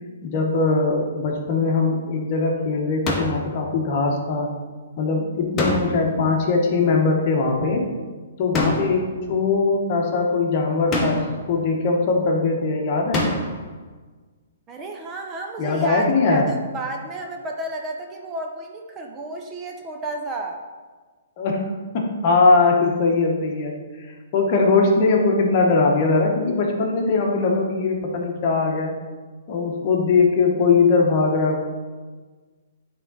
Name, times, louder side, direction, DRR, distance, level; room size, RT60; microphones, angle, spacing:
voice 1, 0.2-4.5 5.0-7.9 8.4-13.3 15.6-16.5 21.4-28.9 29.5-31.6, left 3 dB, 40° left, 0 dB, 1.2 m, -21 dB
sound 1, 3.1-3.5 5.6-6.2 8.5-9.1 10.9-11.5 13.1-13.7, left 1 dB, 20° left, 1.1 m, -25 dB
voice 2, 14.7-20.6, right 2 dB, 20° right, 2 dB, 0.6 m, -32 dB
8.7 x 3.7 x 4.0 m, 1.4 s
hypercardioid pair, 150°, 0 cm